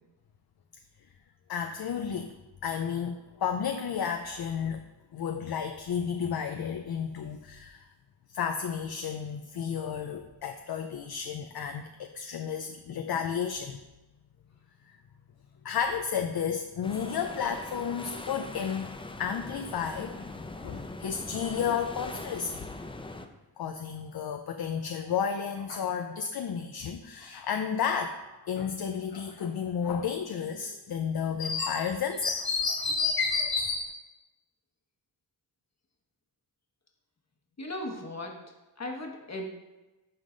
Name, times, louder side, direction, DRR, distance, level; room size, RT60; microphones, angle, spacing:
voice 1, 1.5-2.4 2.6-7.9 8.3-13.8 14.9-15.0 15.6-18.9 19.2-22.7 23.6-33.9, left 6 dB, 60° left, 6 dB, 0.5 m, -32 dB
sound 1, 16.8-23.3, left 2 dB, 10° left, 0.5 m, -41 dB
voice 2, 37.6-38.5 38.8-39.5, left 1 dB, 35° left, 2 dB, 1.3 m, -37 dB
11.0 x 3.8 x 3.8 m, 1.1 s
wide cardioid pair, 75°, 44 cm